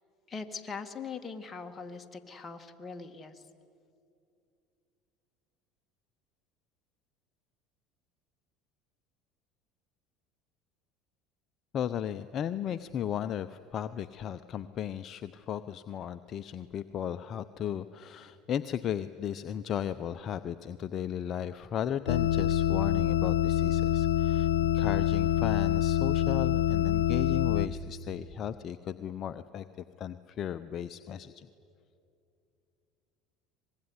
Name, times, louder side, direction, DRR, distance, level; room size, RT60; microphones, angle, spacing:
voice 1, 0.3-3.4, left 5 dB, 25° left, 5 dB, 2.1 m, -41 dB
voice 2, 11.7-24.5 24.7-31.5, left 9 dB, 45° left, 11 dB, 0.8 m, -35 dB
sound 1, 22.1-27.7, left 11 dB, 85° left, 0.7 m, -26 dB
24.5 x 21.0 x 9.8 m, 2.5 s
hypercardioid pair, 85°, 0 cm